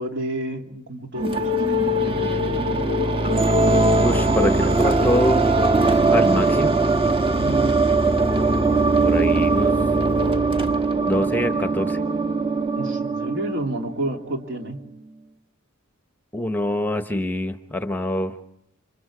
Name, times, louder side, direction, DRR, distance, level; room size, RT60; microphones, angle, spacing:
voice 1, 0.0-2.7 7.4-7.7 12.8-14.8, right 1 dB, 60° right, 3 dB, 2.7 m, -31 dB
sound 1, 1.2-14.1, right 2 dB, 25° right, 1.4 m, -20 dB
voice 2, 4.0-5.5 6.1-6.8 9.0-9.8 11.0-12.0 16.3-18.3, left 1 dB, 10° left, 9 dB, 0.9 m, -24 dB
29.5 x 25.5 x 4.9 m, 0.77 s
head